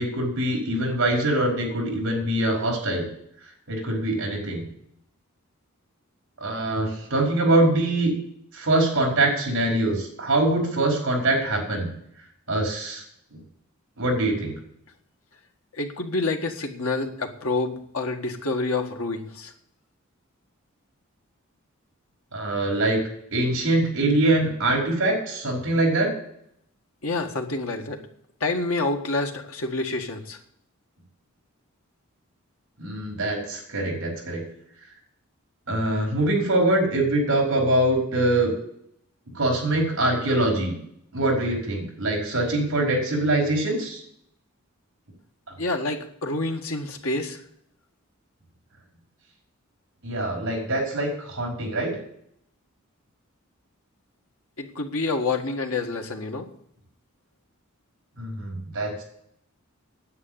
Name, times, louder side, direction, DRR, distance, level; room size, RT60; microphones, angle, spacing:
voice 1, 0.0-3.0 3.7-4.7 6.4-8.1 8.5-11.9 12.5-13.0 13.3-13.4 14.0-14.5 22.3-23.0 23.3-26.1 32.8-34.4 35.7-38.5 39.3-40.7 41.1-44.0 50.0-52.0 58.2-59.0, right 1 dB, 60° right, 0 dB, 5.1 m, -23 dB
voice 2, 15.7-19.5 27.0-28.0 28.4-30.4 45.6-47.4 54.6-56.5, left 3 dB, 80° left, 4 dB, 1.7 m, -28 dB
9.6 x 8.5 x 9.2 m, 0.71 s
head